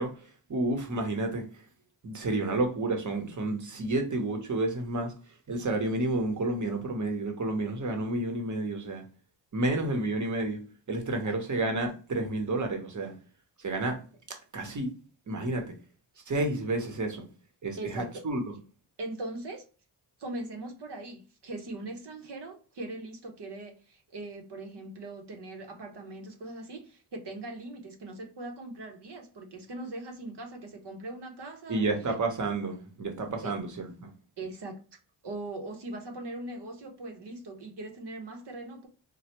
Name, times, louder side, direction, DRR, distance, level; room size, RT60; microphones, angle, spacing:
voice 1, 0.0-1.6 2.0-5.1 5.5-9.0 9.5-10.6 10.9-13.1 13.6-14.0 14.3-14.9 15.3-15.7 16.3-17.3 17.6-18.5 31.7-34.1, right 2 dB, 40° right, 1.0 m, -30 dB
voice 2, 11.0-11.4 17.8-18.2 19.0-19.6 20.2-31.8 33.4-33.6 34.4-34.8 35.2-38.9, right 2 dB, 65° right, 1.0 m, -40 dB
3.3 x 2.3 x 2.9 m
cardioid pair, 85°, 44 cm